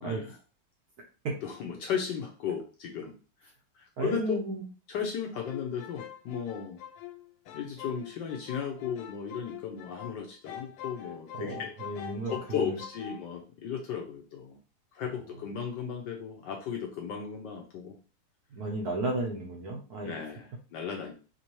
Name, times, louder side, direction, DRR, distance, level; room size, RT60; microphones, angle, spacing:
voice 1, 0.0-0.4 1.4-3.1 3.4-3.5 3.7-4.3 4.9-6.8 7.5-11.7 12.3-14.6 14.9-18.0 20.0-21.1, left 7 dB, 70° left, 2 dB, 1.1 m, -35 dB
voice 2, 4.0-4.6 11.3-12.8 18.5-20.2, right 2 dB, 60° right, 0 dB, 1.0 m, -33 dB
sound 1, 5.3-10.2 10.4-13.2, left 11 dB, 90° left, 1.5 m, -44 dB
4.3 x 2.7 x 3.0 m, 0.34 s
omnidirectional pair, 2.3 m